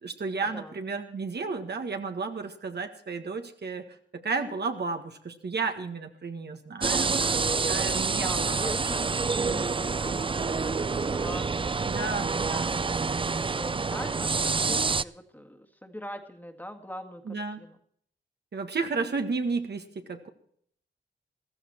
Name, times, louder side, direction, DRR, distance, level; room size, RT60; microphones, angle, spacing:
voice 1, 0.0-3.8 4.2-7.4 7.7-8.7 11.9-12.7 17.2-17.6 18.5-20.3, right 4 dB, 65° right, 5 dB, 1.7 m, -32 dB
sound 1, 6.8-15.0, right 4 dB, 30° right, 0.4 m, -27 dB
voice 2, 8.1-17.8, equal, 10° left, 6 dB, 1.9 m, -42 dB
15.0 x 14.0 x 4.5 m, 0.65 s
cardioid pair, 60°, 19 cm